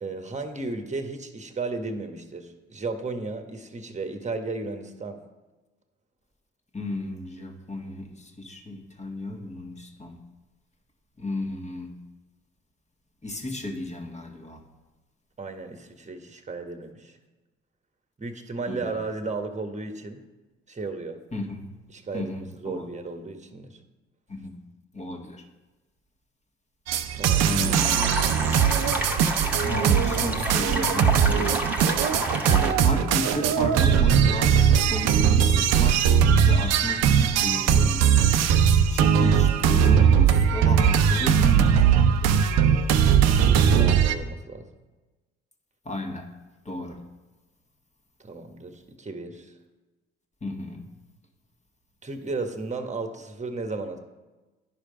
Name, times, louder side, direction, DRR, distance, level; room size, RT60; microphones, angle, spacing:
voice 1, 0.0-5.2 15.4-17.2 18.2-20.2 20.7-21.2 21.9-23.8 27.1-27.6 28.2-28.4 43.4-44.7 48.2-49.5 52.0-54.0, right 3 dB, 25° right, 6 dB, 1.3 m, -34 dB
voice 2, 6.7-10.2 11.2-12.0 13.2-14.6 18.7-19.0 21.3-21.6 22.1-22.9 24.3-24.6 24.9-25.4 27.0-28.1 29.6-31.5 32.2-38.2 38.9-42.4 45.8-46.3 46.6-47.0 50.4-50.9, left 1 dB, 25° left, 3 dB, 1.7 m, -34 dB
sound 1, 26.9-44.1, right 8 dB, 60° right, 0.6 m, -20 dB
sound 2, 27.7-32.7, right 1 dB, 5° right, 1.5 m, -30 dB
10.5 x 5.1 x 5.2 m, 1.2 s
hypercardioid pair, 50°, 29 cm